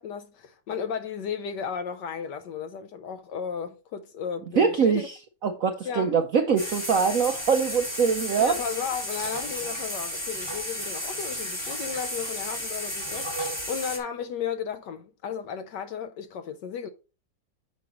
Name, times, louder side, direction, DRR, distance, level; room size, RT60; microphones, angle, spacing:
voice 1, 0.0-5.1 5.8-6.1 8.4-16.9, left 7 dB, 70° left, 1.1 m, -34 dB
voice 2, 4.6-5.0 5.4-8.5, right 6 dB, 70° right, 0.8 m, -23 dB
sound 1, 6.6-14.0, equal, 10° left, 2.0 m, -33 dB
8.6 x 6.3 x 3.0 m
omnidirectional pair, 2.3 m